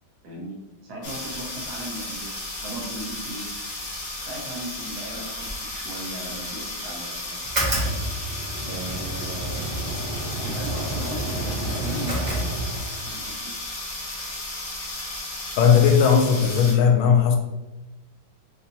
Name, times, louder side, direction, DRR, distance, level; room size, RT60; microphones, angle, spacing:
voice 1, 0.2-0.6 0.8-2.3 2.6-3.6 4.2-5.5 5.7-7.4 7.6-8.1 8.7-9.7 10.4-12.4 13.0-13.5, right 1 dB, 65° right, -2 dB, 1.1 m, -37 dB
sound 1, 1.0-16.7, left 2 dB, 50° left, 1.1 m, -34 dB
sound 2, 7.4-13.1, right 1 dB, 35° right, 0.8 m, -29 dB
voice 2, 15.6-17.4, left 7 dB, 85° left, 4 dB, 1.4 m, -17 dB
4.3 x 2.6 x 2.7 m, 1.1 s
omnidirectional pair, 2.2 m